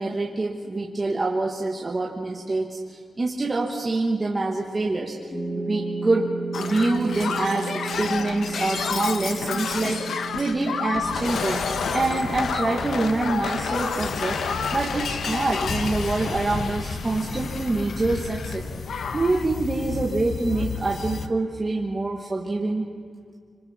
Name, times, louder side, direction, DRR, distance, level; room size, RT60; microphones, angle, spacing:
voice 1, 0.0-5.2 5.5-7.7 8.0-11.6 11.9-14.4 14.7-18.6 19.1-22.9, right 2 dB, 20° right, -2 dB, 1.6 m, -26 dB
sound 1, 5.3-13.1, right 3 dB, 25° left, 2.4 m, -34 dB
Shatter, 6.5-18.6 18.9-19.5 20.5-20.6, left 5 dB, 65° left, 1.1 m, -30 dB
sound 2, 11.1-21.3, left 5 dB, 45° left, 0.9 m, -34 dB
26.0 x 26.0 x 4.4 m, 2.1 s
wide cardioid pair, 175°, 0 cm